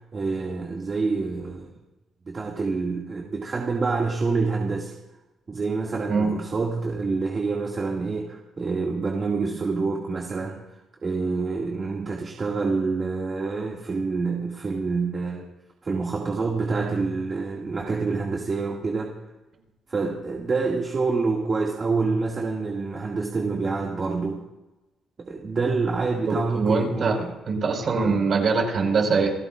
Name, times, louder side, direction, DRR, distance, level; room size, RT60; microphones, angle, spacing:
voice 1, 0.1-1.7 2.3-4.9 5.5-10.6 11.0-15.5 15.8-19.2 19.9-24.4 25.2-27.3 27.8-28.2, right 4 dB, 35° right, -1 dB, 2.3 m, -27 dB
voice 2, 26.3-27.2 27.5-29.3, right 4 dB, 50° right, 1 dB, 5.5 m, -23 dB
29.0 x 15.5 x 2.6 m, 1.0 s
cardioid pair, 90°, 0 cm